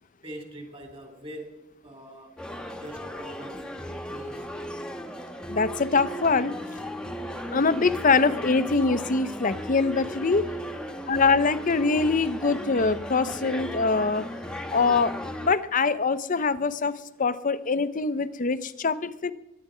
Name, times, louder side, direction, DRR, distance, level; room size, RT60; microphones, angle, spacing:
voice 1, 0.2-2.4 2.7-3.7 4.1-4.7, right 1 dB, 25° right, 4 dB, 2.6 m, -43 dB
sound 1, 2.4-15.5, equal, 5° left, 1.1 m, -36 dB
voice 2, 5.5-6.5 7.5-10.4 11.1-14.3 14.7-15.1 15.4-19.3, left 4 dB, 40° left, 14 dB, 0.6 m, -24 dB
22.5 x 10.0 x 5.0 m, 0.94 s
head